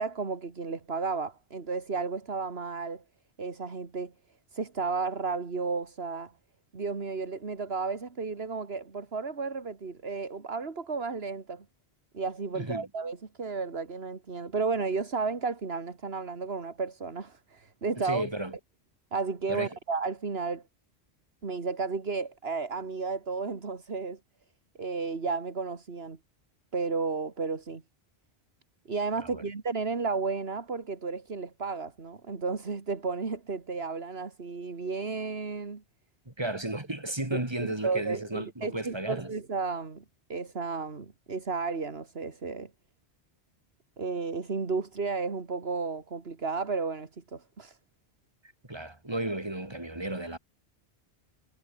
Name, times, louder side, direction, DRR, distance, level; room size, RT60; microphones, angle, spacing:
voice 1, 0.0-3.0 3.4-4.1 4.5-6.3 6.7-11.7 12.1-18.3 19.1-20.6 21.4-24.2 24.8-26.2 26.7-27.8 28.9-35.8 37.3-40.0 40.3-42.7 44.0-47.8, right 4 dB, 70° right, 2.3 m, -33 dB
voice 2, 12.5-12.9 18.0-18.5 19.5-19.7 29.2-29.4 36.3-39.3 48.7-50.4, right 1 dB, 25° right, 3.0 m, -34 dB
omnidirectional pair, 1.1 m